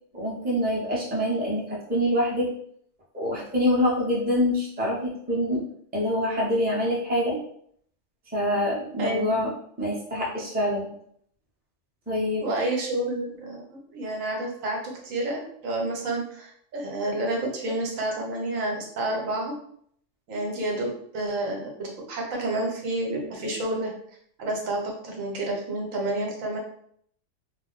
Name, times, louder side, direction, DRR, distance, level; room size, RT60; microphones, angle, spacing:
voice 1, 0.1-2.5 3.1-5.6 5.9-7.4 8.3-9.5 9.8-10.9 12.1-12.5, left 1 dB, 10° right, -5 dB, 0.6 m, -25 dB
voice 2, 9.0-9.3 12.4-19.5 20.3-23.9 24.4-26.6, right 2 dB, 80° right, 0 dB, 1.2 m, -29 dB
2.5 x 2.1 x 3.8 m, 0.64 s
omnidirectional pair, 1.4 m